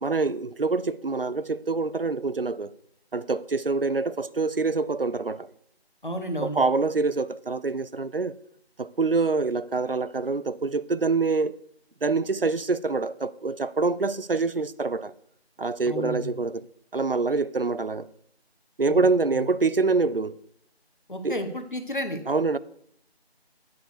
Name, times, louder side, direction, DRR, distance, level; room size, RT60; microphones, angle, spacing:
voice 1, 0.0-2.7 3.1-5.5 6.4-8.3 8.8-11.5 12.0-15.1 15.6-16.6 16.9-18.1 18.8-20.3 21.2-21.4 22.3-22.6, right 3 dB, 60° right, 0.5 m, -25 dB
voice 2, 6.0-6.6 15.8-16.4 18.9-19.0 19.3-19.5 21.1-22.2, equal, 50° left, 1.4 m, -32 dB
9.3 x 6.5 x 6.7 m
figure-of-eight pair, 180°, 32 cm